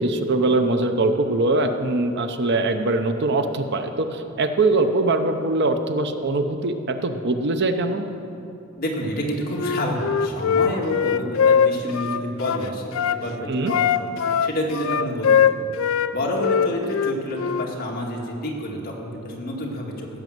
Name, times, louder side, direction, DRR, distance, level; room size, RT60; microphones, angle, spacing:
voice 1, 0.0-8.1 13.5-13.7, right 2 dB, 55° right, 7 dB, 0.7 m, -22 dB
voice 2, 8.8-14.1 14.4-15.6 16.1-20.1, equal, 45° left, -2 dB, 2.0 m, -28 dB
Wind instrument woodwind instrument, 9.5-13.2 13.7-16.1 16.4-17.7, left 7 dB, 70° left, 0.4 m, -21 dB
16.0 x 6.3 x 7.8 m, 2.7 s
head